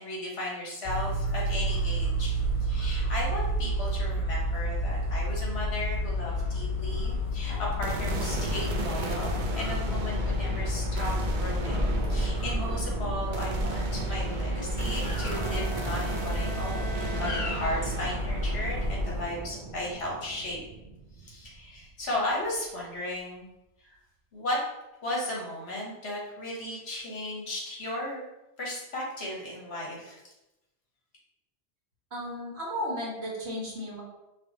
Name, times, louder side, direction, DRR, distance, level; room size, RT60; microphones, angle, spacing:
voice 1, 0.0-20.6 21.2-23.5 23.8-23.9 24.3-24.6 25.0-28.2 28.6-30.2, left 1 dB, 70° left, -3 dB, 1.5 m, -35 dB
sound 1, 0.8-19.2, equal, 30° left, 0.9 m, -30 dB
sound 2, 7.8-22.1, right 4 dB, 50° right, 0.7 m, -36 dB
Bowed string instrument, 15.2-18.3, equal, 10° left, 1.6 m, -41 dB
voice 2, 32.1-34.0, equal, 70° right, -5 dB, 1.8 m, -34 dB
5.0 x 3.3 x 3.0 m, 0.94 s
omnidirectional pair, 1.2 m